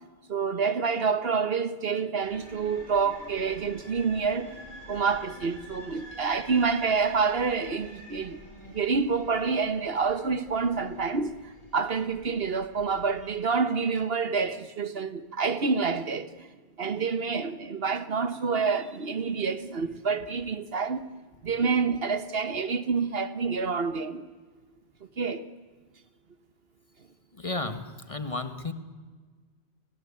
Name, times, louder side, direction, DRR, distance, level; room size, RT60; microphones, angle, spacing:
voice 1, 0.3-4.5 4.9-8.4 8.7-11.4 11.7-16.5 16.8-21.0 21.4-24.2 25.2-25.4, right 5 dB, 60° right, 1.3 m, -27 dB
sound 1, 2.2-13.2, equal, 45° left, 8.3 m, -47 dB
voice 2, 27.4-28.7, left 2 dB, 30° left, 1.5 m, -33 dB
30.0 x 21.5 x 8.5 m
omnidirectional pair, 1.1 m